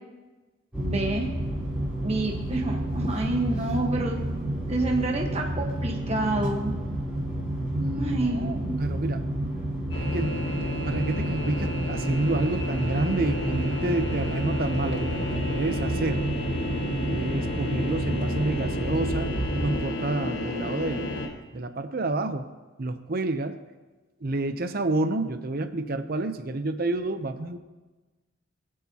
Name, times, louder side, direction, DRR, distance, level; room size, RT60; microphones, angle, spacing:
sound 1, 0.7-19.8, right 1 dB, 5° right, 3.9 m, -30 dB
voice 1, 0.8-1.3 2.0-4.2 4.7-6.7 8.0-8.8, right 2 dB, 35° right, 1 dB, 1.3 m, -28 dB
voice 2, 7.7-9.3 10.0-10.4 10.9-16.2 17.1-21.3 21.5-22.5 22.8-23.6 24.2-27.6, right 2 dB, 50° right, 9 dB, 0.7 m, -29 dB
sound 2, 9.9-21.3, left 1 dB, 60° left, 1.8 m, -32 dB
24.0 x 8.5 x 2.9 m, 1.2 s
head